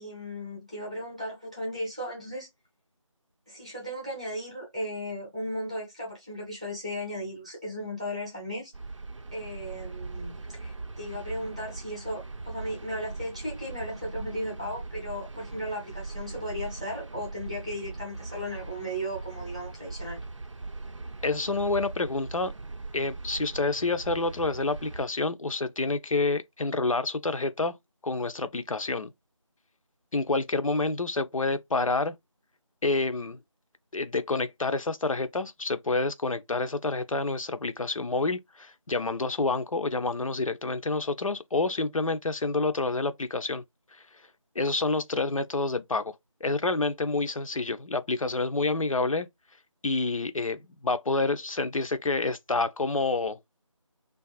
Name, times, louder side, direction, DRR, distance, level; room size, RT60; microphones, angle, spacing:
voice 1, 0.0-2.5 3.5-8.7 9.3-20.2, equal, 15° right, 0.7 m, -36 dB
sound 1, 8.7-25.1, right 3 dB, 65° right, 0.5 m, -40 dB
voice 2, 21.2-22.5 22.9-27.8 28.0-29.1 30.1-32.2 32.8-33.4 33.9-43.6 44.6-46.1 46.4-49.3 49.8-53.4, left 3 dB, 80° left, 0.5 m, -28 dB
2.5 x 2.3 x 2.4 m
figure-of-eight pair, 165°, 17 cm